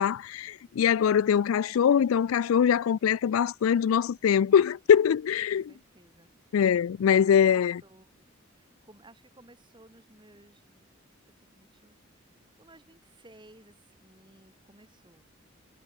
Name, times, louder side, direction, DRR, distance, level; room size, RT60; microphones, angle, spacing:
voice 1, 0.0-5.7 6.5-7.8, left 8 dB, 85° left, 0.3 m, -23 dB
voice 2, 5.5-6.3 7.2-8.3 8.5-11.0 11.4-15.3, right 1 dB, 20° right, 4.7 m, -57 dB
head